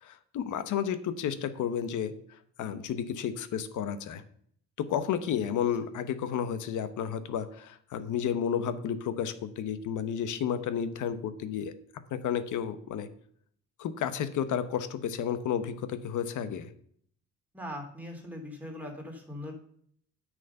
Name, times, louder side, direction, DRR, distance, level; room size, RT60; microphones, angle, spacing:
voice 1, 0.0-4.2 4.8-11.7 12.1-13.1 13.8-16.7, left 8 dB, 80° left, 12 dB, 1.1 m, -32 dB
voice 2, 17.5-19.5, left 1 dB, 5° right, 1 dB, 3.2 m, -40 dB
9.4 x 6.4 x 5.4 m, 0.64 s
cardioid pair, 90°, 30 cm